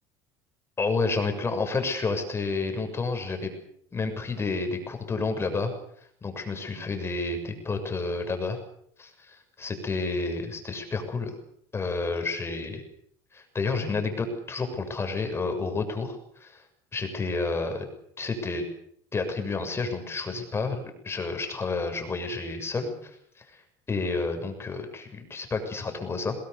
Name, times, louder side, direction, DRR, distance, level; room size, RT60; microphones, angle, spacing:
voice 1, 0.8-3.5 3.9-5.7 6.2-8.6 9.0-11.4 11.7-12.8 13.3-16.6 16.9-17.9 18.2-18.6 19.1-23.6 23.9-26.4, left 3 dB, 20° left, 6 dB, 6.8 m, -30 dB
27.0 x 20.5 x 7.0 m, 0.68 s
supercardioid pair, 120°, 12 cm